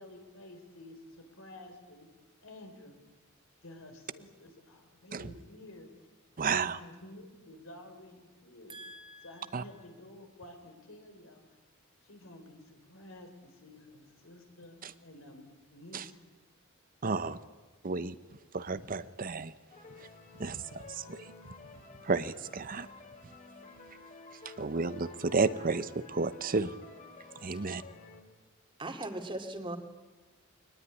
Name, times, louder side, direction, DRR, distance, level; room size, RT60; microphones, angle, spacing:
voice 1, 0.0-2.1 2.4-2.9 3.6-5.9 6.4-8.8 9.2-11.4 12.0-16.2 17.0-17.3, left 1 dB, 70° left, 5 dB, 4.5 m, -51 dB
voice 2, 6.4-6.8 9.5-9.6 14.8-14.9 15.9-16.0 17.0-17.3 17.8-18.2 18.5-19.5 20.4-21.3 22.0-22.9 24.4-26.7 27.4-27.8, right 4 dB, 40° right, 14 dB, 0.7 m, -32 dB
voice 3, 8.7-9.3 27.5-27.7 28.8-29.8, right 1 dB, 25° right, 5 dB, 2.3 m, -40 dB
sound 1, 19.7-28.2, left 3 dB, 35° left, 3.4 m, -52 dB
22.5 x 19.5 x 9.9 m, 1.3 s
head